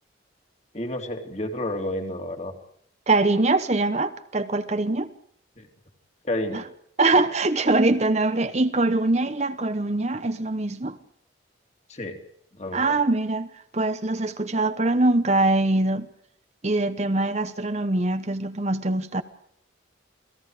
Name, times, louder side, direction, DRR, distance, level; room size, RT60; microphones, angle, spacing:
voice 1, 0.7-2.5 5.6-5.7 6.3-6.6 11.9-12.2 12.6-12.9, left 1 dB, 35° left, 3.1 m, -30 dB
voice 2, 3.1-5.1 6.5-6.6 7.0-11.0 12.7-16.1 16.6-19.2, right 2 dB, 35° right, 1.0 m, -23 dB
29.0 x 19.0 x 5.0 m
head